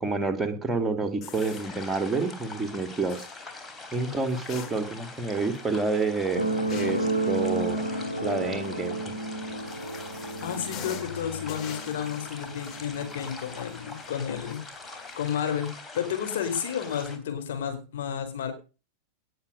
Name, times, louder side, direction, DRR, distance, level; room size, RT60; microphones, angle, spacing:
voice 1, 0.0-3.3 3.9-6.4 6.7-7.8 8.2-9.0, right 3 dB, 10° right, 9 dB, 2.5 m, -28 dB
sound 1, 1.2-2.1 3.1-3.4 4.3-5.2 5.5-5.6 6.7-7.1 9.2-15.3 15.7-15.8 16.7-17.0, left 8 dB, 35° left, 2.7 m, -45 dB
sound 2, 1.3-17.2, left 3 dB, 15° left, 3.3 m, -43 dB
sound 3, 6.3-13.4 14.3-14.4, right 1 dB, 90° left, 2.0 m, -31 dB
voice 2, 10.4-18.5, left 8 dB, 55° left, 6 dB, 4.4 m, -32 dB
18.5 x 8.0 x 5.2 m, 0.34 s
figure-of-eight pair, 90°, 0 cm